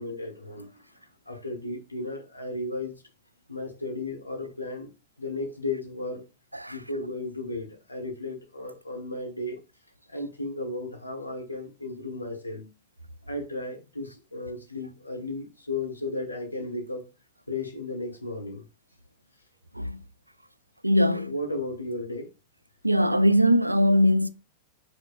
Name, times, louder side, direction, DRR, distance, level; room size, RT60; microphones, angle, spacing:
voice 1, 0.0-2.9 3.5-4.9 5.2-6.2 6.7-9.6 10.1-12.7 13.3-17.1 17.5-18.6 21.1-22.3, left 2 dB, 85° left, 1.2 m, -34 dB
voice 2, 20.8-21.3 22.8-24.3, equal, 85° right, 0.3 m, -21 dB
5.1 x 4.0 x 2.4 m
figure-of-eight pair, 90°, 0 cm